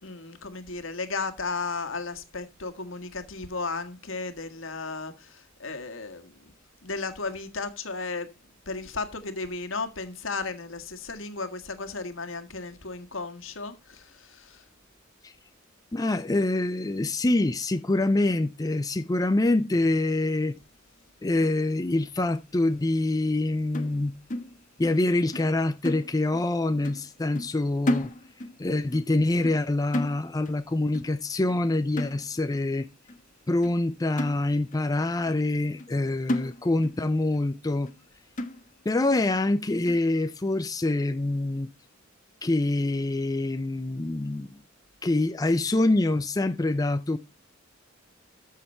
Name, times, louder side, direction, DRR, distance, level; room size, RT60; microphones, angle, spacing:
voice 1, 0.0-6.5 6.8-8.3 8.6-14.6, left 3 dB, 70° left, 1.7 m, -35 dB
voice 2, 15.9-20.6 21.2-24.1 24.8-28.1 28.6-32.9 33.5-37.9 38.9-41.7 42.4-44.5 45.0-47.2, left 2 dB, 20° left, 0.5 m, -25 dB
sound 1, 23.7-25.1 25.3-25.6 25.8-26.5 26.8-27.1 27.4-28.6 28.9-29.1 29.4-29.7 29.9-30.6 30.9-31.2 31.5-31.7 32.0-32.6 33.1-33.2 33.6-33.8 34.2-34.9 35.3-35.4 35.8-36.0 36.3-37.0 37.3-37.4 37.9-38.0 38.4-38.9 39.4-39.5 39.9-40.1, left 1 dB, 40° left, 1.3 m, -33 dB
13.5 x 6.5 x 4.3 m
head